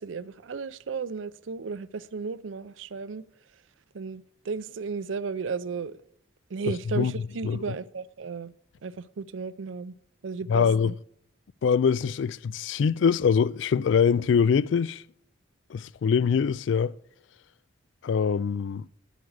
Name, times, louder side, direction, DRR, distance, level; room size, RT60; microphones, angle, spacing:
voice 1, 0.0-3.2 3.9-6.0 6.5-8.5 8.8-9.9 10.2-10.9, right 5 dB, 80° right, 0.5 m, -34 dB
voice 2, 6.7-7.1 7.4-7.8 10.5-10.9 11.6-15.0 15.7-16.9 18.0-18.9, left 6 dB, 70° left, 0.3 m, -24 dB
9.8 x 8.2 x 6.4 m
head